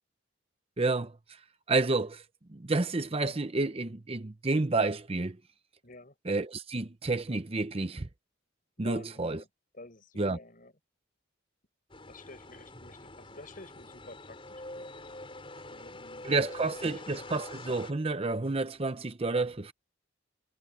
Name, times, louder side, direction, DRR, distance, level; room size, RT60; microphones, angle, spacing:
voice 1, 0.8-1.1 1.7-2.2 2.5-5.4 6.3-8.1 8.8-9.4 10.2-10.4 16.2-19.7, right 3 dB, 30° right, 0.7 m, -30 dB
voice 2, 5.8-6.1 8.8-9.5 9.7-10.7 12.1-14.9 15.7-16.3 16.8-17.3, left 2 dB, 45° left, 6.9 m, -50 dB
sound 1, 11.9-17.9, left 2 dB, 25° left, 5.5 m, -45 dB
head